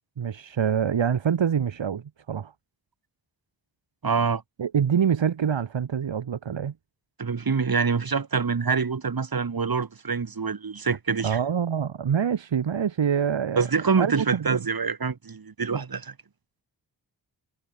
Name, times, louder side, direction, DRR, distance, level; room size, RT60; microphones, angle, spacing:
voice 1, 0.2-2.0 2.3-2.5 4.6-6.7 11.2-14.7, right 7 dB, 80° right, 6.8 m, -25 dB
voice 2, 4.0-4.4 7.2-11.4 13.6-16.1, right 5 dB, 50° right, 3.8 m, -25 dB
cardioid pair, 45°, 44 cm